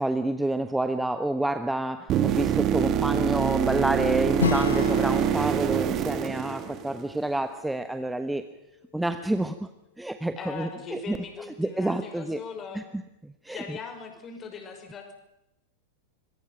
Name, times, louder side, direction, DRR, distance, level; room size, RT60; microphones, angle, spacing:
voice 1, 0.0-8.4 8.9-9.7 10.0-11.2 11.6-12.4 12.7-12.8 13.2-13.8, right 1 dB, 5° right, 9 dB, 1.2 m, -28 dB
sound 1, 2.1-7.2 11.1-11.2, right 9 dB, 35° right, 1.6 m, -25 dB
Acoustic guitar / Strum, 4.4-8.7, left 7 dB, 70° left, 1.1 m, -34 dB
voice 2, 10.4-12.8 13.5-15.1, left 5 dB, 25° left, 5 dB, 5.7 m, -40 dB
26.0 x 23.0 x 5.9 m, 0.86 s
figure-of-eight pair, 90°, 0 cm